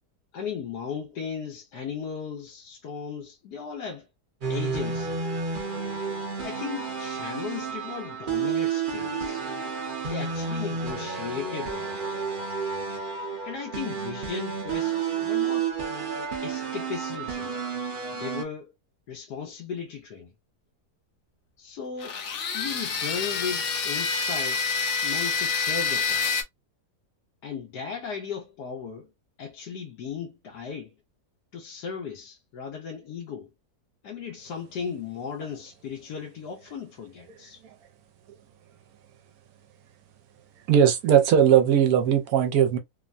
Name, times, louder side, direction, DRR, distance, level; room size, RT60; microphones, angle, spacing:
voice 1, 0.3-4.1 4.5-5.2 6.4-9.4 10.0-12.0 13.4-15.7 16.4-17.5 18.1-18.7 19.1-20.3 21.6-22.2 22.5-24.6 25.0-26.3 27.4-29.1 29.4-30.9 31.5-33.5 34.0-37.6, left 6 dB, 85° left, 1.3 m, -36 dB
sound 1, 4.4-18.4, right 6 dB, 40° right, 0.8 m, -31 dB
sound 2, 22.0-26.4, left 5 dB, 60° left, 0.9 m, -27 dB
voice 2, 40.7-42.8, right 9 dB, 70° right, 1.1 m, -19 dB
3.1 x 2.1 x 2.5 m
omnidirectional pair, 1.7 m